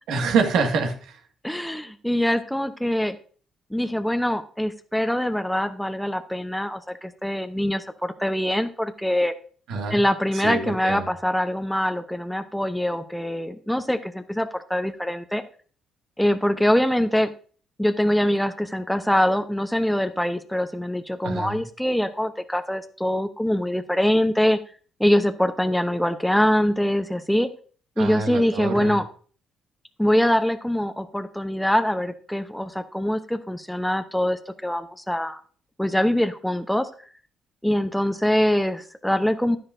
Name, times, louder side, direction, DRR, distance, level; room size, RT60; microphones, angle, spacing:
voice 1, 0.1-1.2 9.7-10.0 10.3-11.0 21.2-21.6 28.0-29.0, right 5 dB, 80° right, 4 dB, 1.8 m, -26 dB
voice 2, 1.4-3.2 3.7-9.3 9.9-15.4 16.2-17.3 17.8-24.6 25.0-27.5 28.0-29.0 30.0-35.4 35.8-36.9 37.6-39.6, left 1 dB, 5° left, 8 dB, 0.8 m, -23 dB
11.0 x 10.0 x 2.6 m, 0.42 s
cardioid pair, 100°, 0 cm